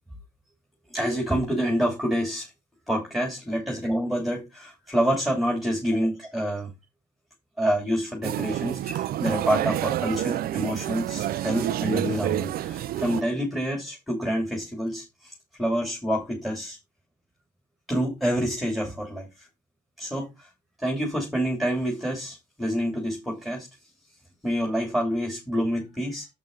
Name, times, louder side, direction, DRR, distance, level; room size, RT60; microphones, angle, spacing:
voice 1, 0.9-2.5 2.9-6.7 7.6-16.8 17.9-19.5 20.0-20.5 20.8-23.7 24.4-26.3, equal, ahead, 3.1 m, -27 dB
sound 1, 8.2-13.2, right 13 dB, 65° right, 0.7 m, -28 dB
7.9 x 6.8 x 4.1 m
cardioid pair, 110°, 17 cm